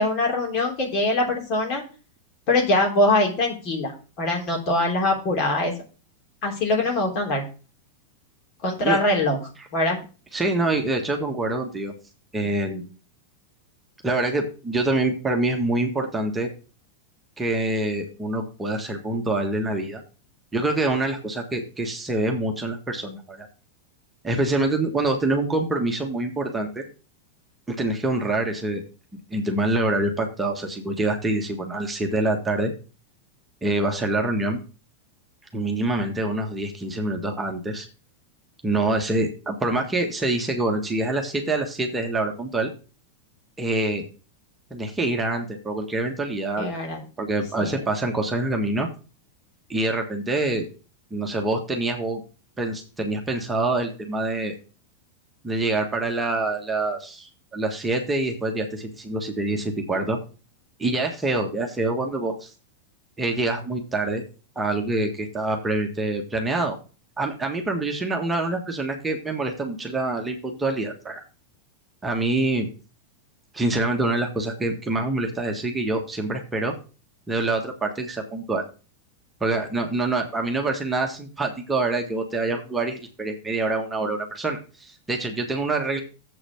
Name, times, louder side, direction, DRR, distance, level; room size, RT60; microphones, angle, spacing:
voice 1, 0.0-1.8 2.5-3.9 4.2-5.7 6.4-7.4 8.6-9.4 9.7-10.0 46.6-47.0 47.6-47.8, left 2 dB, 40° left, 1 dB, 3.1 m, -23 dB
voice 2, 10.3-11.9 12.3-12.8 14.0-16.5 17.4-20.0 20.5-23.5 24.2-26.8 27.7-28.8 29.3-32.7 33.6-34.6 35.5-37.9 38.6-42.7 43.6-44.1 44.7-46.7 47.2-48.9 49.7-50.7 51.1-52.2 52.6-54.5 55.4-60.2 60.8-62.5 63.2-64.2 64.5-66.7 67.2-71.2 72.0-72.7 73.5-76.7 77.3-78.6 79.4-86.0, right 2 dB, 15° right, 2 dB, 1.6 m, -25 dB
7.6 x 4.9 x 7.0 m, 0.35 s
figure-of-eight pair, 90°, 0 cm